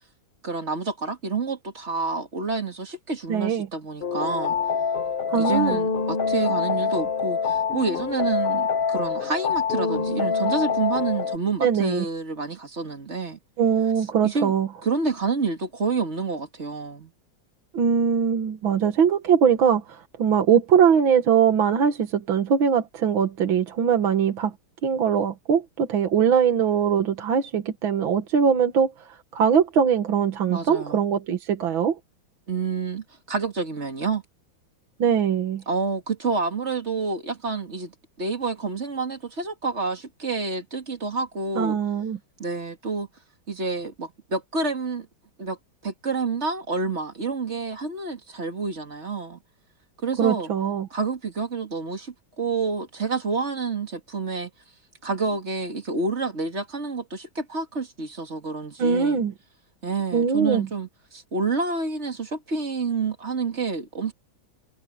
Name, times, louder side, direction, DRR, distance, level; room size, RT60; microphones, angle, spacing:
voice 1, 0.4-4.6 5.3-13.4 14.2-14.5 14.8-17.1 30.5-31.0 32.5-34.2 35.7-41.8 42.4-43.1 43.5-45.1 45.4-45.6 45.8-49.4 50.0-50.5 50.9-54.5 55.0-59.2 59.8-64.1, right 4 dB, 35° right, 2.4 m, -28 dB
voice 2, 3.3-3.7 5.3-5.8 11.6-12.1 13.6-14.7 17.7-24.5 24.8-28.9 29.3-32.0 35.0-35.6 41.6-42.2 50.2-50.9 58.8-59.3 60.1-60.7, right 7 dB, 80° right, 2.2 m, -21 dB
sound 1, 4.0-11.4, left 6 dB, 45° left, 0.7 m, -25 dB
omnidirectional pair, 2.2 m